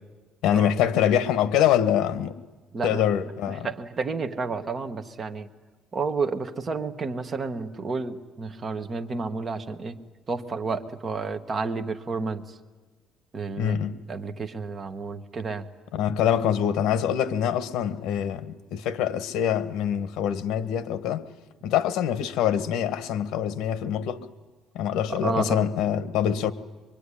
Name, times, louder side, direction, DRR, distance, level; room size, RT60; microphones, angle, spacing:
voice 1, 0.4-2.4 2.8-3.7 13.6-14.0 15.9-21.2 21.6-24.3 24.7-26.5, left 9 dB, 75° left, 1.3 m, -25 dB
voice 2, 3.6-5.5 5.9-10.0 10.3-12.4 13.3-13.8 14.1-15.7 25.1-25.7, right 4 dB, 25° right, 1.2 m, -30 dB
24.0 x 23.5 x 9.9 m
cardioid pair, 180°, 0 cm